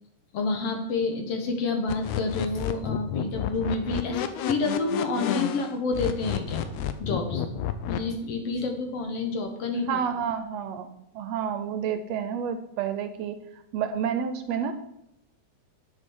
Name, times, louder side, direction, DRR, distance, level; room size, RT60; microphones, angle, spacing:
voice 1, 0.3-6.7 7.0-7.4 7.9-10.0, left 3 dB, 60° left, 4 dB, 2.1 m, -29 dB
sound 1, 1.9-8.0, left 10 dB, 85° left, 2.1 m, -30 dB
voice 2, 9.9-10.9 11.1-13.4 13.7-14.7, right 8 dB, 75° right, 9 dB, 1.7 m, -29 dB
9.3 x 6.5 x 6.2 m, 0.82 s
omnidirectional pair, 3.3 m